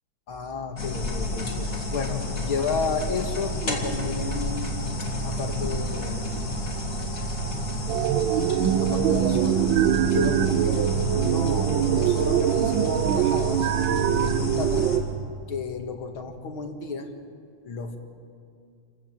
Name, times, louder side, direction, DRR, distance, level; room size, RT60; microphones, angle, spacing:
voice 1, 0.3-4.7 5.2-6.5 8.8-9.6 10.0-13.7 14.2-15.0 15.5-17.1 17.6-18.0, left 4 dB, 80° left, 5 dB, 2.6 m, -32 dB
sound 1, 0.8-15.0, right 1 dB, 40° left, 2.9 m, -29 dB
sound 2, 7.9-15.0, right 10 dB, 75° right, 1.4 m, -24 dB
29.5 x 15.5 x 7.5 m, 2.3 s
omnidirectional pair, 2.2 m